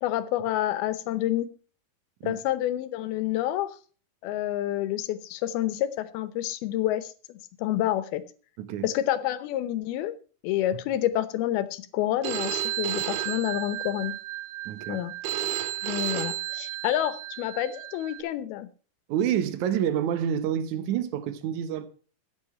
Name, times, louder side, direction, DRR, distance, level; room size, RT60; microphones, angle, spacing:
voice 1, 0.0-1.5 2.2-3.8 4.2-8.2 8.8-10.1 10.4-14.2 14.9-15.1 15.8-18.7, left 13 dB, 90° left, 2.8 m, -28 dB
voice 2, 8.6-8.9 14.7-15.0 19.1-21.9, right 9 dB, 65° right, 2.1 m, -28 dB
Telephone, 12.2-18.2, right 13 dB, 85° right, 3.0 m, -32 dB
14.5 x 8.8 x 4.3 m
omnidirectional pair, 4.3 m